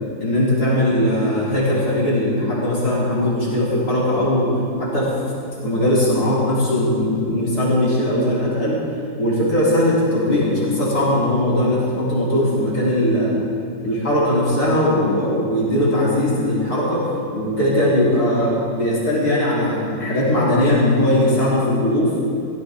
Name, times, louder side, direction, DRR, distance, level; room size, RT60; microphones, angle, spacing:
voice 1, 0.2-5.1 5.6-8.8 9.1-13.4 13.8-22.2, left 1 dB, 50° left, -8 dB, 5.1 m, -19 dB
17.0 x 15.5 x 3.9 m, 2.3 s
omnidirectional pair, 2.0 m